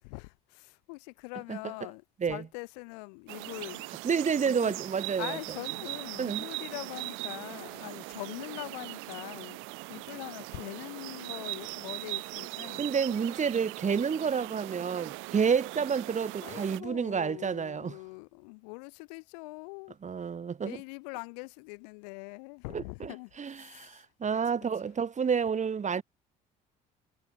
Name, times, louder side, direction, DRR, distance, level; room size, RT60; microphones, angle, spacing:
voice 1, 0.0-3.9 4.4-4.7 5.2-9.6 9.9-12.9 16.4-20.0 20.6-24.4, left 34 dB, 80° left, 4.4 m, -43 dB
sound 1, 3.3-16.8, right 26 dB, 75° right, 4.4 m, -40 dB
voice 2, 4.0-5.4 6.2-6.4 12.8-18.0 20.0-20.8 22.7-23.1 23.4-26.0, right 6 dB, 35° right, 3.0 m, -29 dB
hypercardioid pair, 70°, 20 cm